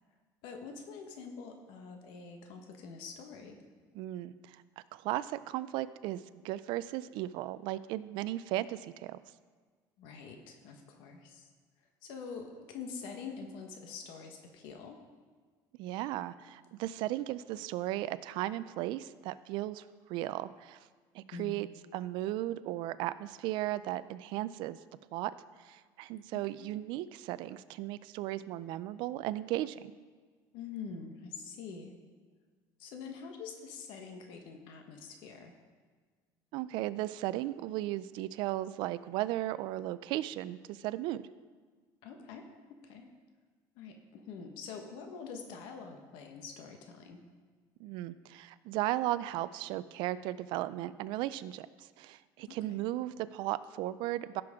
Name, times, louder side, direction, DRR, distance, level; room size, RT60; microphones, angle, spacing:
voice 1, 0.4-3.6 10.0-11.5 12.0-15.0 21.3-21.6 26.3-26.7 30.5-31.9 32.8-35.5 42.0-42.5 42.8-43.1 43.7-47.2 52.5-52.8, left 5 dB, 75° left, 4 dB, 1.2 m, -45 dB
voice 2, 3.9-4.6 4.9-9.2 15.8-19.8 20.1-20.8 21.1-21.7 21.9-24.8 25.1-25.3 25.6-29.8 36.5-41.2 47.8-54.4, right 15 dB, 70° right, 15 dB, 0.4 m, -36 dB
15.5 x 6.1 x 3.6 m, 1.5 s
cardioid pair, 120°, 8 cm